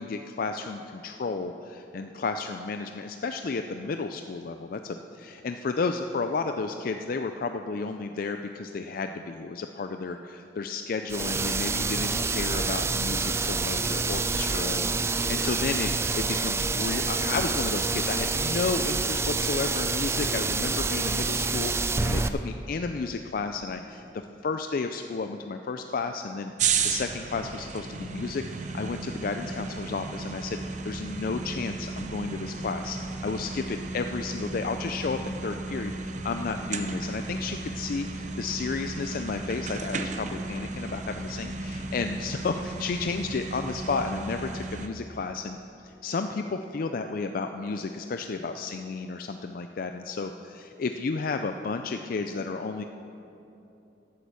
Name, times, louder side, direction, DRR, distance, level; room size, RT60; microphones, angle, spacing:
voice 1, 0.0-24.0 24.4-52.8, left 4 dB, 55° left, 7 dB, 0.4 m, -32 dB
sound 1, 11.1-22.3, right 4 dB, 15° right, 0.3 m, -27 dB
sound 2, 26.6-44.9, right 4 dB, 45° right, 0.7 m, -34 dB
12.0 x 8.6 x 6.8 m, 2.9 s
head